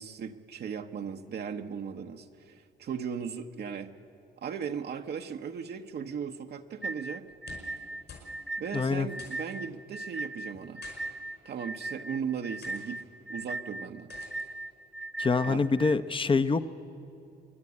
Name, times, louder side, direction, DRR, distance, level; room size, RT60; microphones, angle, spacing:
voice 1, 0.0-3.9 4.4-7.3 8.6-10.8 11.4-14.1 15.4-15.6, right 7 dB, 55° right, 5 dB, 0.9 m, -37 dB
sound 1, 6.8-16.0, right 2 dB, ahead, 0.5 m, -38 dB
sound 2, 7.3-7.8 8.1-8.3 8.6-8.7 9.2-9.6 10.5-11.0 11.8-12.0 12.6-12.9 14.1-14.5, left 5 dB, 60° left, 5.3 m, -49 dB
voice 2, 8.7-9.1 15.2-16.6, left 4 dB, 25° left, 11 dB, 0.8 m, -25 dB
26.5 x 10.5 x 9.7 m, 2.8 s
cardioid pair, 90°, 20 cm